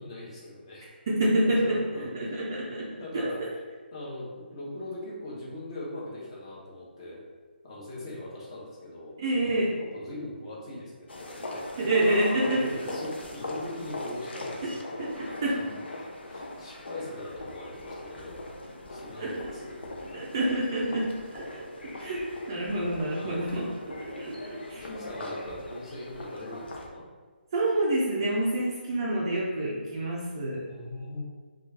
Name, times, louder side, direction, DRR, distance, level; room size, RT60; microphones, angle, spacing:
voice 1, 0.0-0.9 1.4-2.4 3.0-3.6 3.9-7.2 7.6-9.1 9.8-11.8 12.5-20.2 23.2-23.5 24.8-27.0 30.7-31.2, left 1 dB, 30° left, -5 dB, 0.7 m, -41 dB
voice 2, 1.1-3.3 9.2-9.8 11.8-12.6 14.6-14.7 15.0-15.1 15.4-15.5 19.2-19.4 20.1-24.8 27.5-30.6, right 1 dB, 25° right, -5 dB, 0.4 m, -28 dB
sound 1, 11.1-26.9, left 1 dB, 70° left, 0.6 m, -40 dB
3.0 x 2.3 x 3.2 m, 1.5 s
hypercardioid pair, 170°, 6 cm